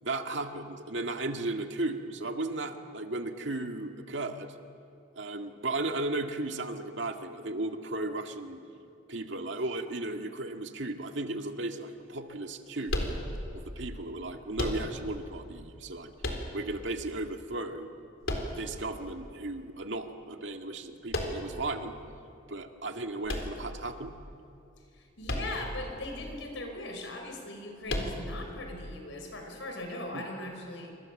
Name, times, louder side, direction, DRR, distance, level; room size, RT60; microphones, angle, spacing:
voice 1, 0.0-4.5 5.2-8.6 9.1-13.2 13.5-16.1 16.5-17.9 18.5-21.9 22.5-24.1 30.1-30.2, right 2 dB, 70° right, 4 dB, 1.9 m, -35 dB
sound 1, 12.9-13.7 14.5-15.2 16.2-16.9 18.2-19.0 21.1-21.7 23.2-24.1 25.2-25.8 26.1-26.2 27.9-28.5, left 1 dB, 90° left, 4.0 m, -33 dB
voice 2, 25.2-30.9, left 1 dB, 70° left, 3 dB, 5.4 m, -39 dB
27.5 x 25.5 x 7.7 m, 2.6 s
head